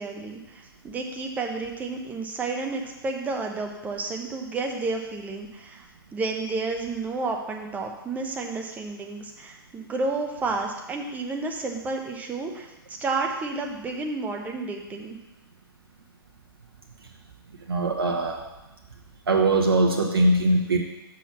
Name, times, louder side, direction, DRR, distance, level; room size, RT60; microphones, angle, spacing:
voice 1, 0.0-5.9 6.1-15.2, right 3 dB, 10° right, 1 dB, 0.9 m, -31 dB
voice 2, 17.7-18.5 19.3-20.8, right 2 dB, 70° right, 1 dB, 1.0 m, -21 dB
6.1 x 6.0 x 5.9 m, 1.0 s
figure-of-eight pair, 115°, 13 cm